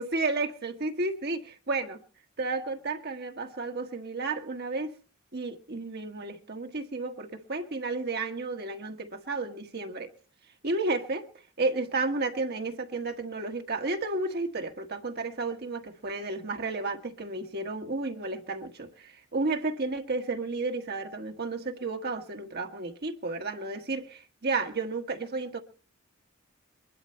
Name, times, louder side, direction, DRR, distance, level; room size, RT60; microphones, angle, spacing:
voice 1, 0.0-2.0 2.4-4.9 5.3-10.1 10.6-11.3 11.6-25.6, right 3 dB, 50° right, 1.4 m, -32 dB
22.5 x 12.0 x 4.4 m
head